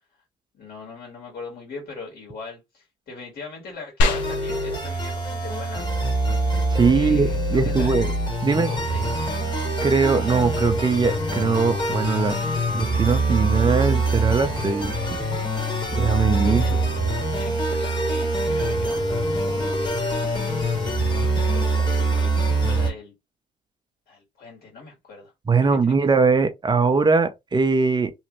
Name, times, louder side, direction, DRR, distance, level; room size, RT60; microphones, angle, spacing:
voice 1, 0.5-5.8 6.9-7.9 8.5-9.2 16.4-16.7 17.4-19.1 19.5-20.2 21.5-23.1 24.1-25.3 25.6-25.9, left 3 dB, 50° left, 1.9 m, -40 dB
sound 1, 4.0-14.0, left 1 dB, 75° left, 0.9 m, -34 dB
sound 2, 4.0-22.9, right 2 dB, 25° left, 1.5 m, -24 dB
voice 2, 6.7-8.1 8.4-8.8 9.8-12.4 12.7-15.2 15.9-16.6 25.5-28.1, right 4 dB, 25° right, 0.6 m, -21 dB
3.1 x 2.4 x 3.0 m
hypercardioid pair, 65°, 19 cm